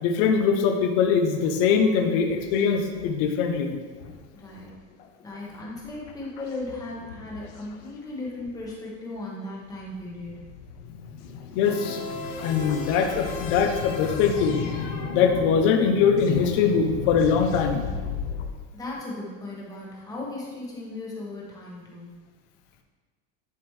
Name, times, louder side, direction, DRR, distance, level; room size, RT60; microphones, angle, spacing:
voice 1, 0.0-3.7 11.6-12.0 12.4-14.6 15.1-17.8, left 6 dB, 25° left, 4 dB, 0.3 m, -22 dB
sound 1, 1.3-1.6 2.1-3.3 3.5-3.6 3.9-8.7 9.2-9.3 9.7-18.5, left 6 dB, 85° left, 1.0 m, -36 dB
voice 2, 4.3-4.9 5.2-10.4 18.7-22.1, left 2 dB, 10° left, -4 dB, 1.0 m, -37 dB
sound 2, 11.6-16.0, left 4 dB, 50° left, 0.9 m, -37 dB
10.5 x 5.0 x 3.1 m, 1.4 s
supercardioid pair, 180°, 40 cm